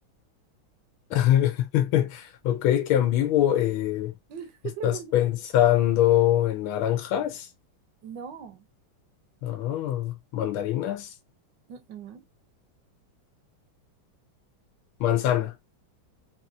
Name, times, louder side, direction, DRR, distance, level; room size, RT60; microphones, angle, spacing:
voice 1, 1.1-4.1 4.8-7.5 9.4-11.1 15.0-15.5, left 12 dB, 80° left, 1.6 m, -23 dB
voice 2, 4.3-5.1 8.0-8.6 11.7-12.2, right 8 dB, 65° right, 1.3 m, -39 dB
4.1 x 3.0 x 2.5 m
omnidirectional pair, 2.3 m